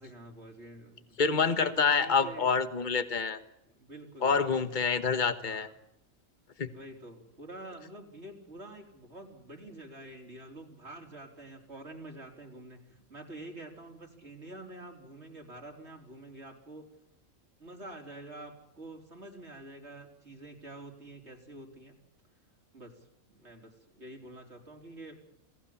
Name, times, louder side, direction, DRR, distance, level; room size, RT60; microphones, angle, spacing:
voice 1, 0.0-2.5 3.7-4.5 5.4-5.7 6.6-16.8 17.6-22.0 22.7-25.4, right 1 dB, 50° right, 2 dB, 4.5 m, -47 dB
voice 2, 1.2-3.4 4.2-5.7 6.6-6.7, left 5 dB, 35° left, 11 dB, 1.6 m, -27 dB
28.0 x 18.5 x 7.3 m, 0.84 s
omnidirectional pair, 1.4 m